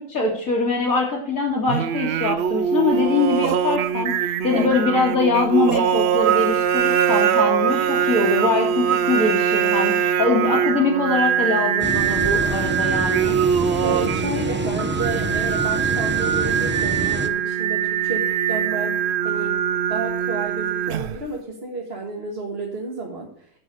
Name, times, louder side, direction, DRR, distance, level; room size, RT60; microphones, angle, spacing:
voice 1, 0.1-13.4, left 3 dB, 65° left, -6 dB, 2.7 m, -23 dB
Singing, 1.7-21.3, right 8 dB, 65° right, 0.6 m, -22 dB
sound 1, 11.8-17.3, right 1 dB, 15° right, 0.4 m, -28 dB
voice 2, 13.8-19.5 19.9-23.3, right 2 dB, 40° right, -2 dB, 1.9 m, -31 dB
10.5 x 6.1 x 6.3 m, 0.64 s
omnidirectional pair, 1.6 m